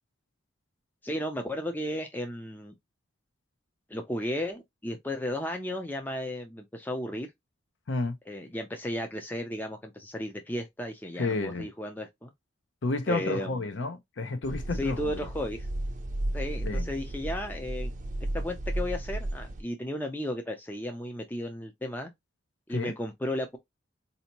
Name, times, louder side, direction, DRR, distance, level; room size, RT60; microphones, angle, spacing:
voice 1, 1.0-2.7 3.9-7.3 8.3-12.3 13.1-13.6 14.7-15.7 16.3-17.9 18.3-22.1 22.7-23.6, left 1 dB, 10° left, 0.4 m, -34 dB
voice 2, 11.2-11.7 12.8-15.3 16.6-16.9 22.7-22.9, left 3 dB, 60° left, 0.6 m, -31 dB
sound 1, 14.4-19.6, right 1 dB, 40° right, 0.5 m, -33 dB
4.3 x 2.7 x 2.8 m
head